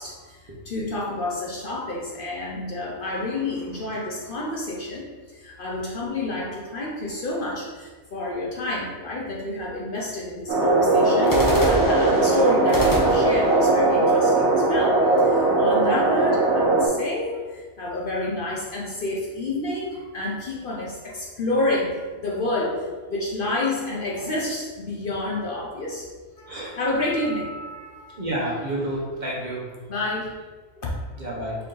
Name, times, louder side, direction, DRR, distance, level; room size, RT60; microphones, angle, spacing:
voice 1, 0.0-21.9 22.2-26.1 26.4-28.1 29.9-30.3 30.8-30.9, left 2 dB, 55° left, -4 dB, 0.7 m, -29 dB
sound 1, 3.0-4.5 11.2-15.2, left 1 dB, 25° left, 0.5 m, -31 dB
sound 2, 10.5-16.9, right 2 dB, 65° right, 1.1 m, -19 dB
voice 2, 26.5-26.8 28.2-29.7 31.2-31.6, right 1 dB, 40° right, -5 dB, 1.0 m, -29 dB
4.5 x 2.7 x 3.8 m, 1.4 s
omnidirectional pair, 1.2 m